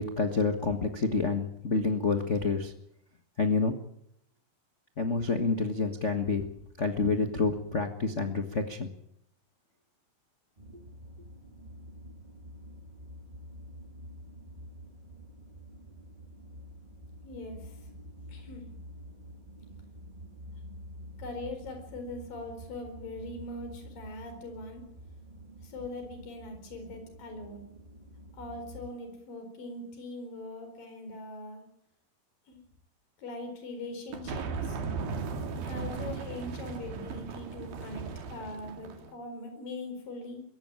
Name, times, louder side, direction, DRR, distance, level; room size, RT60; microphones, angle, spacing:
voice 1, 0.0-2.7 3.4-3.8 5.0-6.4 6.8-8.9, left 4 dB, 90° left, 6 dB, 0.6 m, -28 dB
sound 1, 10.6-28.9, equal, 30° right, 0.8 m, -48 dB
voice 2, 17.2-17.9 18.3-18.7 21.2-24.8 25.6-27.7 28.4-31.6 32.5-32.6 33.2-34.8 35.6-40.4, left 2 dB, 70° left, 6 dB, 6.1 m, -41 dB
sound 2, 34.1-39.1, right 5 dB, 85° right, 4.1 m, -37 dB
22.5 x 17.0 x 9.0 m, 0.73 s
omnidirectional pair, 4.1 m